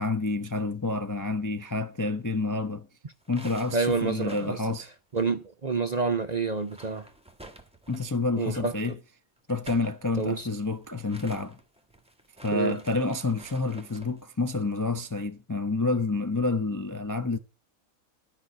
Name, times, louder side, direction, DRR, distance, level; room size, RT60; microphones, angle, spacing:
voice 1, 0.0-2.9 3.3-4.9 7.9-9.0 9.5-11.6 12.4-17.4, left 3 dB, 25° left, 0.4 m, -28 dB
sound 1, 3.1-5.8 6.0-6.1 6.5-8.3 9.4-14.2, right 1 dB, 5° right, 1.3 m, -50 dB
voice 2, 3.7-4.6 5.1-7.1 8.4-8.9 10.2-10.5 12.5-12.8, right 4 dB, 40° right, 0.6 m, -28 dB
12.5 x 5.4 x 7.8 m
omnidirectional pair, 1.5 m